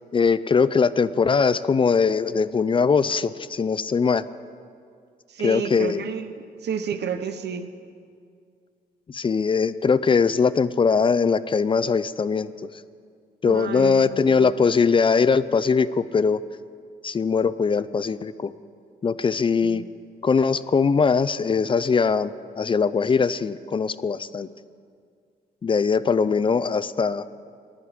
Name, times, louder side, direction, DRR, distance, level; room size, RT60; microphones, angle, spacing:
voice 1, 0.1-4.2 5.4-6.0 9.1-12.5 13.4-16.4 17.0-18.5 19.0-19.8 20.2-24.5 25.6-27.3, left 5 dB, 30° left, 14 dB, 0.4 m, -21 dB
voice 2, 5.3-7.7 13.4-14.6 19.6-19.9, right 7 dB, 85° right, 9 dB, 0.8 m, -31 dB
16.5 x 11.0 x 5.1 m, 2.2 s
cardioid pair, 110°, 17 cm